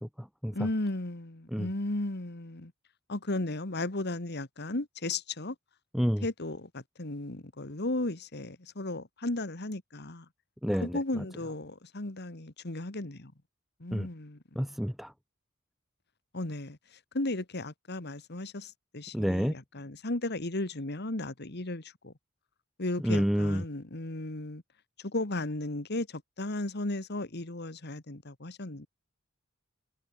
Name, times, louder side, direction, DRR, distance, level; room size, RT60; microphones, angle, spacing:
voice 1, 0.0-0.6 1.5-1.7 5.9-6.3 10.6-11.0 13.9-14.1 14.5-15.1 19.1-19.5 23.0-23.6, equal, ahead, 1.2 m, -29 dB
voice 2, 0.5-2.7 3.1-5.6 6.2-10.3 10.8-13.3 13.8-14.4 16.3-16.8 17.1-22.1 22.8-24.6 25.0-28.9, left 2 dB, 55° left, 2.0 m, -35 dB
head